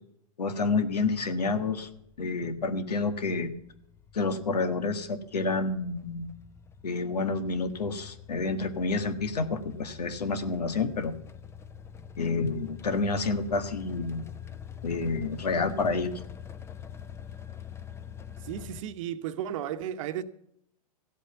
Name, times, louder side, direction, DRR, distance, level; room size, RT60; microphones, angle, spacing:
voice 1, 0.4-1.9 2.2-3.5 4.1-6.3 6.8-11.1 12.2-14.2 14.8-16.1, left 3 dB, 90° left, 1.6 m, -29 dB
sound 1, 0.8-18.8, left 8 dB, 15° left, 0.6 m, -45 dB
voice 2, 18.4-20.2, right 10 dB, 55° right, 1.1 m, -34 dB
15.5 x 8.2 x 6.9 m
hypercardioid pair, 125°, 20 cm